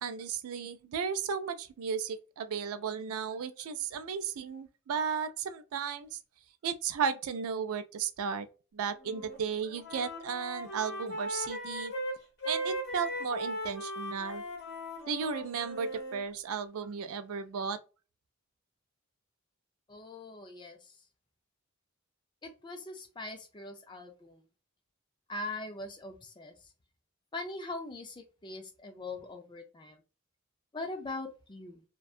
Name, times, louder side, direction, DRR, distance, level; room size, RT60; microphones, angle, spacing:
voice 1, 0.0-6.2 6.6-8.5 8.7-11.9 12.5-14.4 15.1-17.8, right 6 dB, 75° right, 0.3 m, -34 dB
Wind instrument woodwind instrument, 9.0-9.4 9.7-16.2, equal, 50° left, 0.9 m, -38 dB
voice 2, 19.9-21.0 22.4-24.5 25.3-26.7 27.3-30.0 30.7-31.8, left 2 dB, 20° left, 0.4 m, -42 dB
2.6 x 2.2 x 2.3 m
head